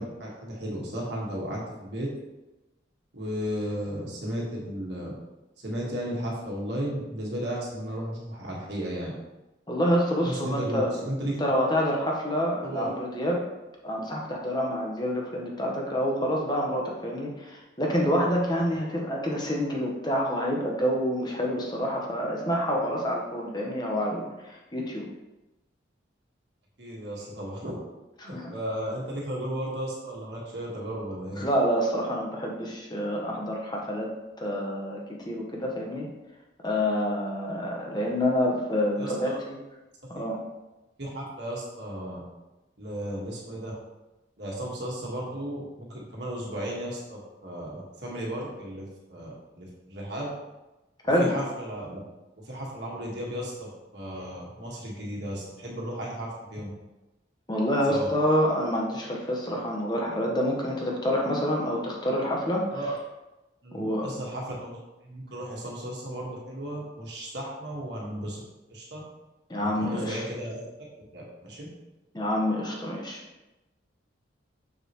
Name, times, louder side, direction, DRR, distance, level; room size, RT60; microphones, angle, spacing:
voice 1, 0.0-2.1 3.1-5.1 5.6-9.1 10.2-11.3 12.6-12.9 26.8-27.8 28.2-31.5 39.0-39.4 40.1-40.2 41.0-42.2 42.8-43.7 44.4-50.3 51.2-52.0 52.4-56.7 57.9-58.1 62.7-62.9 63.6-64.8 65.0-68.4 68.7-69.0 69.5-70.7 71.1-71.7, equal, 60° right, -4 dB, 1.6 m, -34 dB
voice 2, 9.7-10.9 11.4-13.4 13.8-25.1 28.2-28.5 31.4-34.1 34.4-35.0 35.2-36.1 36.6-39.6 40.1-40.4 51.0-51.3 57.5-62.6 63.7-64.1 69.5-70.2 72.1-73.2, equal, 20° left, -1 dB, 1.1 m, -27 dB
6.6 x 6.3 x 3.0 m, 1.0 s
head